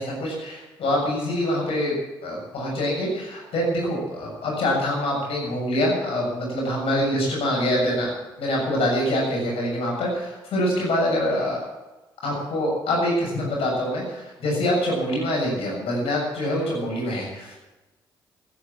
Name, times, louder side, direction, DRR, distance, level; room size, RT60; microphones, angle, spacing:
voice 1, 0.0-2.0 2.2-8.1 8.4-11.6 12.2-17.6, left 1 dB, 60° left, -2 dB, 6.9 m, -25 dB
14.5 x 10.5 x 7.4 m, 1.1 s
figure-of-eight pair, 40°, 11 cm